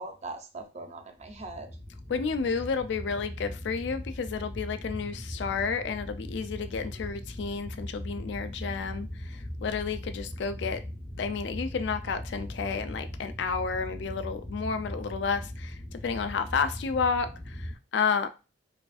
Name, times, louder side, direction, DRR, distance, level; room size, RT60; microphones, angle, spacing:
voice 1, 0.0-1.7 6.7-7.1, right 2 dB, 40° right, 0.6 m, -41 dB
sound 1, 1.2-17.7, equal, 20° left, 0.7 m, -39 dB
voice 2, 2.1-10.8 11.2-18.3, left 5 dB, 70° left, 0.4 m, -31 dB
4.7 x 2.6 x 2.3 m
head